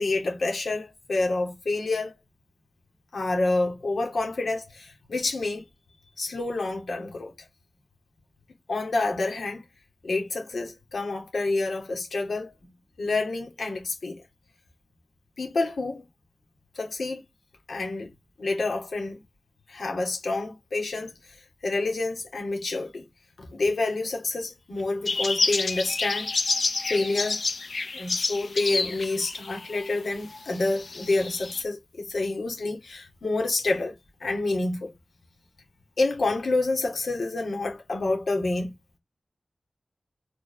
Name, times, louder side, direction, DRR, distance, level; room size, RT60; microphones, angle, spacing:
voice 1, 0.0-2.1 3.1-5.6 6.2-7.3 8.7-9.6 10.0-12.5 13.0-14.2 15.4-16.1 16.7-17.2 17.7-18.1 18.4-19.2 19.7-21.1 21.6-23.0 23.4-26.4 26.9-27.4 27.9-33.9 34.2-34.9 36.0-38.7, left 2 dB, 85° left, 2.7 m, -28 dB
sound 1, 25.1-29.9 30.3-31.6, left 3 dB, 60° left, 1.1 m, -29 dB
5.1 x 4.6 x 5.8 m
wide cardioid pair, 75°, 0 cm